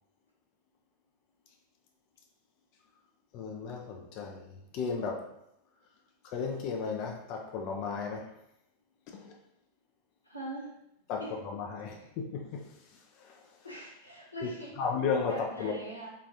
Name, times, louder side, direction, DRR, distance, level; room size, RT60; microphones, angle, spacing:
voice 1, 3.3-5.2 6.3-8.3 9.1-9.3 11.1-12.7 13.2-13.4 14.4-14.5 14.8-15.7, left 5 dB, 40° left, 1 dB, 0.4 m, -34 dB
voice 2, 10.3-10.7 11.2-11.4 13.6-14.7 15.3-16.1, right 1 dB, 85° left, -3 dB, 0.9 m, -42 dB
3.7 x 2.4 x 2.8 m, 0.81 s
figure-of-eight pair, 90°, 0 cm